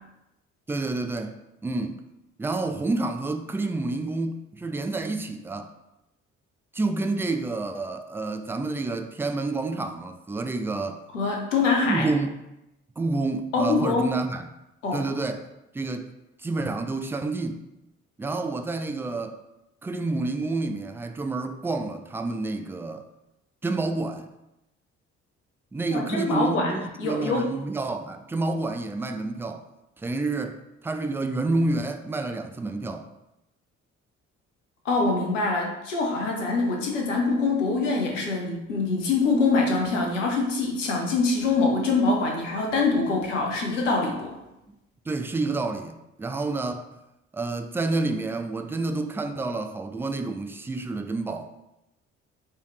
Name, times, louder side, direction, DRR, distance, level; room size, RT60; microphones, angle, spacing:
voice 1, 0.7-1.3 1.6-2.0 2.4-5.7 6.7-11.0 11.9-12.3 13.0-14.5 14.9-15.5 15.7-16.1 16.4-17.6 18.2-19.4 19.8-23.0 23.6-24.3 25.7-29.6 30.0-33.1 45.1-46.8 47.3-51.5, right 3 dB, 5° right, 0.3 m, -29 dB
voice 2, 11.1-12.1 13.5-14.1 14.8-15.0 25.9-27.6 34.8-44.4, left 3 dB, 80° left, 0.8 m, -24 dB
4.4 x 3.3 x 3.2 m
figure-of-eight pair, 45°, 37 cm